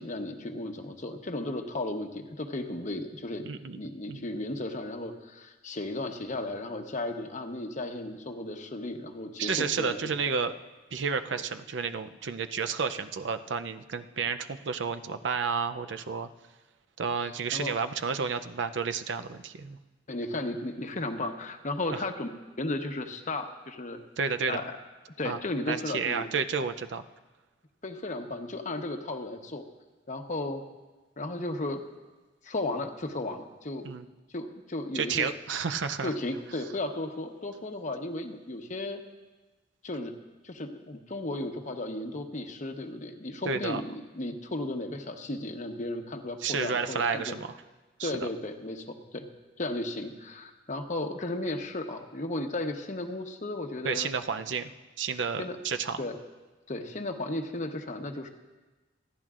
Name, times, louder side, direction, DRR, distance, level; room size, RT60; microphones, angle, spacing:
voice 1, 0.0-3.5 3.8-10.0 17.2-17.7 20.1-22.3 22.6-24.0 24.5-24.8 25.2-26.3 27.8-29.6 30.1-30.6 31.2-31.8 32.4-33.9 34.3-35.3 36.0-39.0 39.8-40.1 40.4-47.4 48.0-49.3 49.6-54.1 55.4-55.6 56.0-56.2 56.7-58.3, left 2 dB, 45° left, 5 dB, 1.0 m, -35 dB
voice 2, 3.4-3.8 4.1-4.3 9.4-10.5 10.9-16.3 17.0-19.8 21.9-22.0 24.2-24.6 25.2-25.4 25.7-27.0 33.8-34.1 34.9-36.1 43.5-43.8 46.4-47.5 48.0-48.3 53.8-54.7 55.0-56.0, right 5 dB, 80° right, 9 dB, 0.6 m, -31 dB
29.0 x 10.5 x 2.5 m, 1.2 s
head